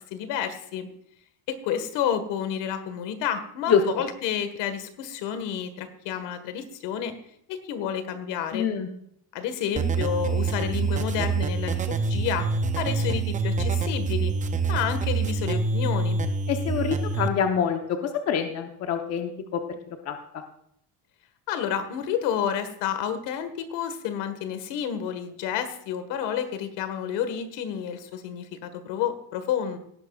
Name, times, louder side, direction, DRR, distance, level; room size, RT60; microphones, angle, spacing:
voice 1, 0.1-0.9 1.5-7.1 7.5-8.7 9.3-12.5 12.8-14.3 14.7-16.2 21.5-29.8, left 8 dB, 75° left, 10 dB, 1.6 m, -30 dB
voice 2, 8.5-8.9 16.5-19.6 20.0-20.4, left 7 dB, 35° left, 5 dB, 0.9 m, -26 dB
sound 1, 9.7-17.3, right 4 dB, 20° right, 0.5 m, -26 dB
18.0 x 11.0 x 2.4 m, 0.73 s
cardioid pair, 175°, 43 cm